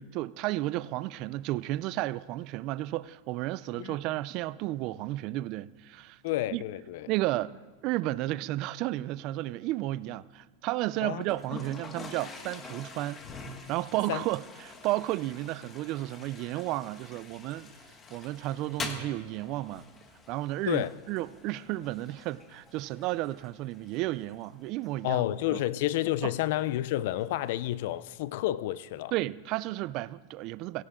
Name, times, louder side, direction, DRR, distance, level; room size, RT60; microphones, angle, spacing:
voice 1, 0.0-6.2 6.5-6.6 7.1-7.5 7.8-13.2 13.7-17.7 18.1-19.9 20.3-25.6 26.2-26.3 29.1-30.8, right 17 dB, 50° right, 0.4 m, -33 dB
voice 2, 6.2-7.1 11.0-11.2 14.1-14.3 20.7-20.9 25.0-29.1, left 15 dB, 65° left, 0.5 m, -30 dB
Toilet flush, 11.2-28.2, left 4 dB, 20° left, 1.4 m, -47 dB
17.5 x 16.0 x 3.8 m
supercardioid pair, 135°, 0 cm